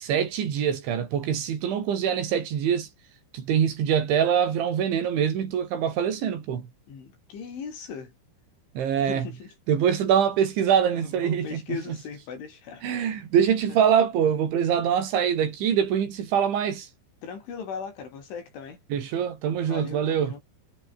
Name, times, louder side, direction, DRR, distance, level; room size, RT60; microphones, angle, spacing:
voice 1, 0.0-2.9 3.3-6.7 8.8-9.3 9.7-11.8 12.8-16.9 18.9-20.3, right 8 dB, 75° right, 5.9 m, -24 dB
voice 2, 6.9-8.1 9.0-9.5 10.9-12.9 17.2-18.8 19.6-20.4, left 6 dB, 85° left, 8.1 m, -38 dB
omnidirectional pair, 5.4 m